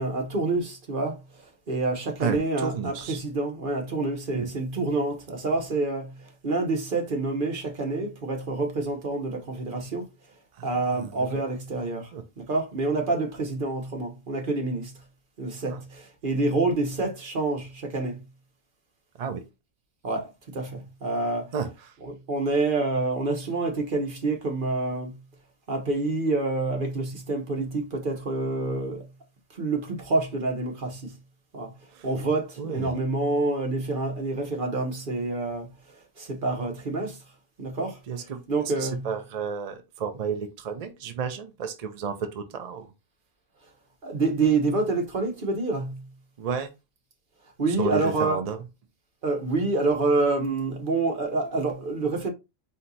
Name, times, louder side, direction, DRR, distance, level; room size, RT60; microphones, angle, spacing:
voice 1, 0.0-10.1 10.6-14.9 15.4-18.2 20.0-21.5 22.0-25.2 25.7-29.1 29.5-31.1 31.5-31.7 32.0-35.7 36.2-37.2 37.6-38.0 38.5-39.2 44.0-46.1 47.6-48.4 49.2-52.3, right 3 dB, 40° right, 1.2 m, -27 dB
voice 2, 2.2-3.2 4.3-4.5 10.6-10.7 11.3-11.4 12.1-12.2 15.7-15.8 19.2-19.4 21.5-21.7 32.0-32.1 32.6-32.9 38.1-38.4 38.8-42.9 46.4-46.7 47.8-48.6, right 6 dB, 60° right, 0.4 m, -31 dB
4.3 x 2.8 x 3.9 m
omnidirectional pair, 1.4 m